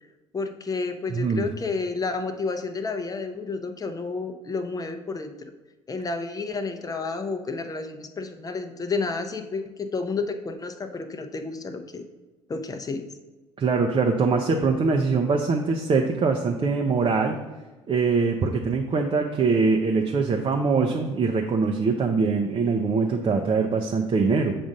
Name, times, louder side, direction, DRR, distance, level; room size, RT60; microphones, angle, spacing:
voice 1, 0.3-5.3 5.9-12.0 12.5-13.0, left 4 dB, 25° left, 7 dB, 0.7 m, -30 dB
voice 2, 1.1-1.5 13.6-17.4 17.9-24.5, right 4 dB, 35° right, 2 dB, 0.6 m, -23 dB
7.1 x 2.6 x 5.2 m, 1.2 s
hypercardioid pair, 65°, 15 cm